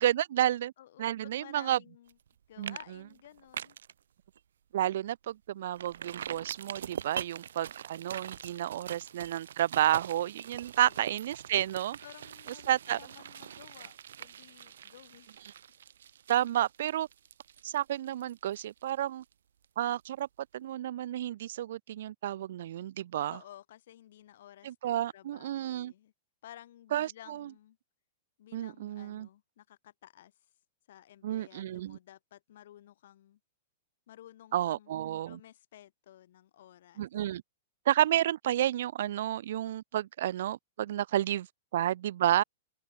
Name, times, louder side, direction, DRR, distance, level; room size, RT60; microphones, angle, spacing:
voice 1, 0.0-0.7 1.0-1.8 2.6-2.8 4.7-12.0 12.7-13.0 16.3-17.1 17.6-19.2 19.8-20.3 20.5-23.4 24.6-25.9 26.9-27.5 28.5-29.3 31.2-32.0 34.5-35.4 37.0-37.4 37.9-41.5 41.7-42.4, right 12 dB, 70° right, 0.3 m, -31 dB
voice 2, 0.8-2.2 2.5-3.8 8.7-8.8 10.7-11.2 12.0-15.6 23.2-26.1 26.4-27.8 28.4-30.5 30.9-33.4 34.1-34.9 35.3-37.0, left 12 dB, 65° left, 7.1 m, -54 dB
sound 1, 2.1-2.3 2.6-2.8 3.1-3.9 4.4-4.5 4.9-5.0 5.8-19.3 19.6-19.7, right 9 dB, 90° right, 4.5 m, -43 dB
open air
supercardioid pair, 155°, 0 cm